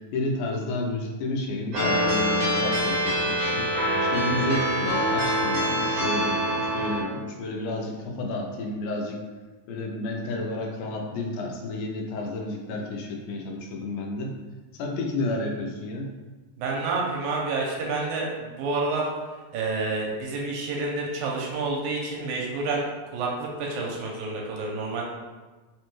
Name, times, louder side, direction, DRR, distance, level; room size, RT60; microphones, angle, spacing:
voice 1, 0.1-3.7 4.0-9.2 9.7-14.3 14.7-16.1, left 2 dB, 85° left, 1 dB, 2.1 m, -31 dB
sound 1, 1.7-7.0, equal, 55° right, 1.8 m, -25 dB
voice 2, 16.6-19.1 19.5-22.9 23.1-25.0, right 3 dB, 80° right, -2 dB, 2.0 m, -29 dB
5.0 x 2.2 x 3.0 m, 1.3 s
omnidirectional pair, 3.5 m